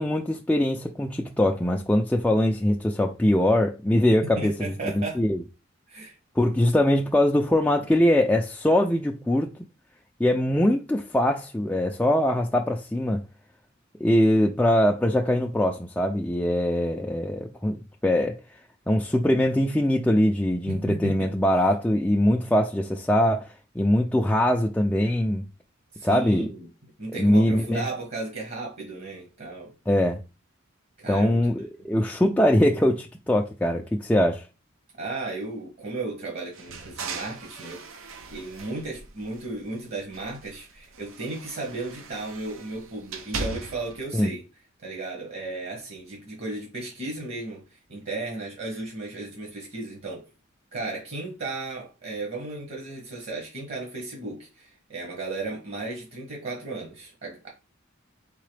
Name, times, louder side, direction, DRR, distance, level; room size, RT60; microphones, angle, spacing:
voice 1, 0.0-5.4 6.4-9.5 10.2-13.2 14.0-17.8 18.0-18.3 18.9-23.5 23.8-25.4 26.0-26.5 27.1-27.8 29.9-30.2 31.1-34.4 44.1-44.3, left 1 dB, 5° left, 0.3 m, -22 dB
voice 2, 4.2-5.2 5.9-6.2 20.7-21.3 25.9-26.7 27.0-29.7 31.0-31.9 35.0-44.4 44.8-50.2 50.7-57.5, right 2 dB, 55° right, 1.2 m, -35 dB
sound 1, 36.5-39.7 40.1-44.0, right 3 dB, 85° right, 0.7 m, -39 dB
3.9 x 3.7 x 3.3 m
head